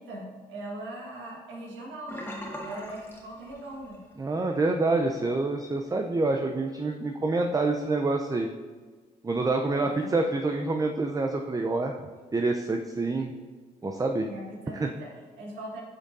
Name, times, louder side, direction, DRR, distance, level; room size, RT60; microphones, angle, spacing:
voice 1, 0.0-2.3 2.6-4.0 9.8-10.1 14.3-15.8, right 1 dB, 80° right, -2 dB, 1.5 m, -40 dB
Sink (filling or washing), 2.1-4.1 4.4-4.7 5.1-5.2, equal, 10° left, 1.6 m, -40 dB
voice 2, 4.2-8.5 9.2-12.0 12.3-13.3 13.8-14.3 14.8-14.9, right 3 dB, 20° right, 3 dB, 0.5 m, -27 dB
8.3 x 5.1 x 2.6 m, 1.4 s
hypercardioid pair, 45°, 19 cm